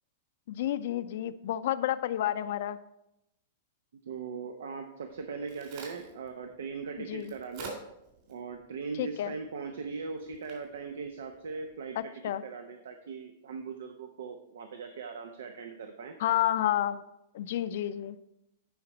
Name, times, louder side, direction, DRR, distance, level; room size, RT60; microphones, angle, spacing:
voice 1, 0.5-2.8 7.0-7.3 9.0-9.3 12.0-12.4 16.2-17.0 17.3-18.2, left 12 dB, 65° left, 14 dB, 0.5 m, -30 dB
voice 2, 4.1-7.8 8.3-12.1 12.4-16.1, right 5 dB, 85° right, 6 dB, 0.8 m, -40 dB
Crack, 5.1-12.0, right 3 dB, 50° right, 3.4 m, -50 dB
10.5 x 5.0 x 4.3 m, 0.86 s
supercardioid pair, 145°, 0 cm